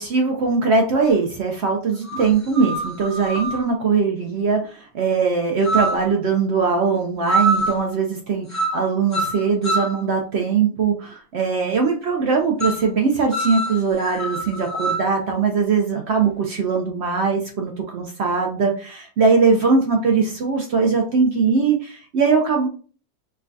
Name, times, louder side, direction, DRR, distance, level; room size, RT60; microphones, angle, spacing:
voice 1, 0.0-22.7, right 5 dB, 70° right, 2 dB, 0.6 m, -21 dB
sound 1, 1.0-1.1 2.1-3.6 5.6-6.1 7.3-7.8 8.5-8.8 9.1-10.0 12.6-12.9 13.3-15.1, right 2 dB, 15° left, 0.5 m, -24 dB
4.4 x 2.2 x 2.6 m, 0.40 s
omnidirectional pair, 1.7 m